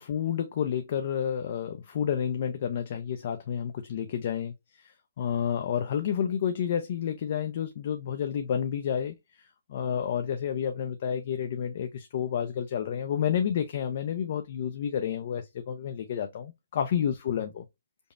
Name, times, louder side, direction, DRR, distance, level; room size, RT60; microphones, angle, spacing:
voice 1, 0.0-9.1 9.7-17.6, left 8 dB, 40° left, 0.4 m, -30 dB
5.2 x 2.0 x 2.4 m
hypercardioid pair, 165°, 0 cm